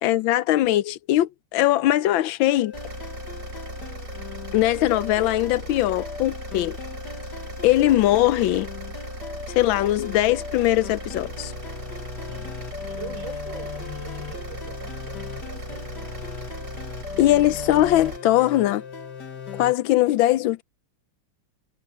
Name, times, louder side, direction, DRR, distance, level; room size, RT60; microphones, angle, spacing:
voice 1, 0.0-2.7 4.5-6.8 7.6-8.7 9.6-11.5 17.2-18.8 19.6-20.6, left 14 dB, 85° left, 1.4 m, -20 dB
sound 1, 2.5-19.7, left 6 dB, 60° left, 2.3 m, -38 dB
sound 2, 2.7-18.2, right 2 dB, 45° right, 5.9 m, -38 dB
voice 2, 12.2-12.6 12.9-16.1, right 5 dB, 75° right, 6.7 m, -43 dB
omnidirectional pair, 2.1 m